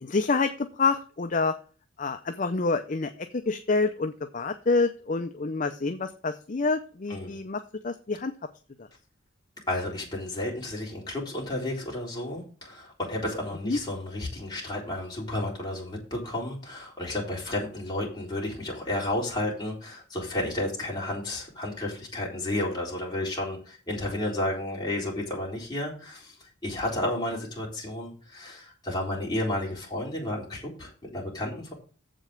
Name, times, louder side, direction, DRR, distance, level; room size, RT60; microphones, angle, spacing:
voice 1, 0.0-1.5 2.0-8.3 13.7-13.8, left 3 dB, 40° left, 8 dB, 0.5 m, -27 dB
voice 2, 9.7-31.7, left 1 dB, 20° left, -4 dB, 3.7 m, -32 dB
7.6 x 5.2 x 7.4 m, 0.39 s
head